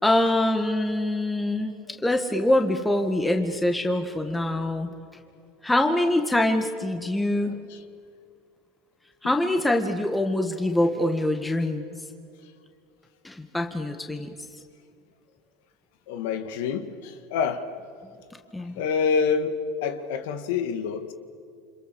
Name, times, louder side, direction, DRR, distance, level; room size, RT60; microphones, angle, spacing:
voice 1, 0.0-5.0 5.6-7.6 9.2-11.9 13.2-14.3 18.5-18.7, left 1 dB, 10° left, 5 dB, 1.9 m, -24 dB
voice 2, 16.1-17.7 18.8-21.1, left 6 dB, 70° left, 9 dB, 2.1 m, -27 dB
28.5 x 26.5 x 7.1 m, 2.3 s
hypercardioid pair, 95°, 0 cm